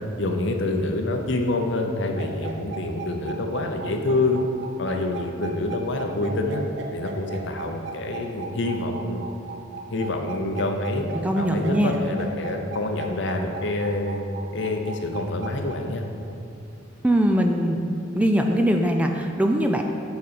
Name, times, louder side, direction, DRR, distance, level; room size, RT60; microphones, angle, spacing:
voice 1, 0.2-4.4 4.8-6.6 6.9-9.3 9.9-11.1 11.3-14.2 14.5-16.0, left 2 dB, 65° left, 4 dB, 0.8 m, -26 dB
sound 1, 2.1-15.7, right 4 dB, 60° right, 0.9 m, -37 dB
voice 2, 11.0-11.9 17.0-17.8 18.1-19.8, equal, 5° right, 3 dB, 0.4 m, -21 dB
8.2 x 4.0 x 6.9 m, 2.7 s
head